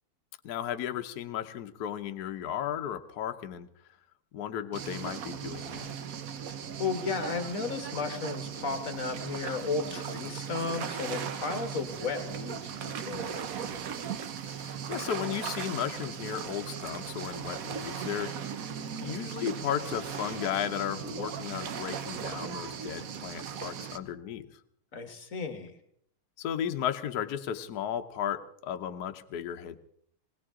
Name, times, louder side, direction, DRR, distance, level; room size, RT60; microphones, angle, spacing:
voice 1, 0.4-3.7 4.3-6.0 13.7-13.8 14.5-18.3 19.0-24.5 26.4-29.8, left 10 dB, 60° left, 7 dB, 1.2 m, -35 dB
sound 1, 4.7-24.0, right 7 dB, 60° right, 1.0 m, -38 dB
voice 2, 6.5-13.5 24.9-25.7, left 4 dB, 45° left, 8 dB, 1.5 m, -34 dB
20.0 x 18.5 x 3.7 m, 0.63 s
omnidirectional pair, 2.3 m